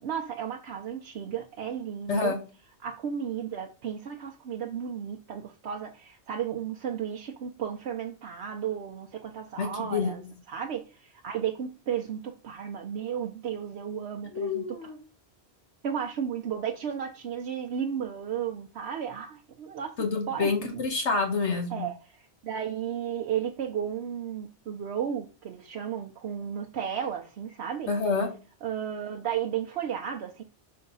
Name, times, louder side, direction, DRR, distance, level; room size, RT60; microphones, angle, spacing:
voice 1, 0.0-2.3 2.8-10.2 10.5-14.8 15.8-20.0 20.3-20.8 21.7-27.9 28.6-30.4, right 8 dB, 70° right, 1.0 m, -34 dB
voice 2, 9.6-10.1 14.3-15.0 20.0-21.8 27.9-28.3, left 4 dB, 85° left, 1.7 m, -27 dB
6.5 x 3.4 x 5.4 m
omnidirectional pair, 1.1 m